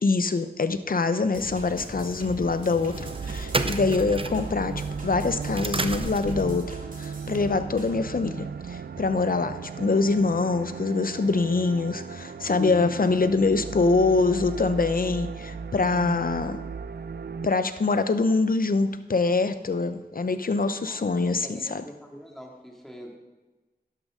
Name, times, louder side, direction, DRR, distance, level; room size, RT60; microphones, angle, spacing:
voice 1, 0.0-16.6 17.4-21.8, left 3 dB, 60° left, 11 dB, 0.7 m, -24 dB
sound 1, 1.3-6.6, right 2 dB, 35° right, 0.7 m, -33 dB
sound 2, 1.3-8.0, right 1 dB, 55° right, 2.3 m, -46 dB
sound 3, 2.9-17.5, right 6 dB, 80° right, 0.5 m, -36 dB
voice 2, 20.9-23.2, equal, ahead, -1 dB, 2.4 m, -45 dB
11.5 x 11.5 x 3.7 m, 1.2 s
wide cardioid pair, 55°, 17 cm